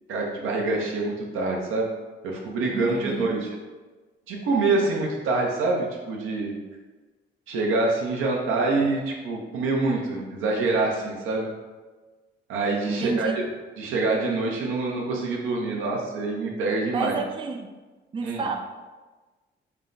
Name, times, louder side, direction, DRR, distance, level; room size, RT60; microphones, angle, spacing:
voice 1, 0.1-1.9 2.2-3.5 4.3-6.5 7.5-11.5 12.5-13.4 13.8-17.1 18.2-18.5, right 3 dB, 85° right, -1 dB, 0.9 m, -26 dB
voice 2, 2.7-3.4 12.9-13.4 16.9-17.7 18.1-18.6, right 4 dB, 25° right, 4 dB, 0.4 m, -30 dB
4.6 x 2.2 x 3.9 m, 1.3 s
cardioid pair, 90°, 20 cm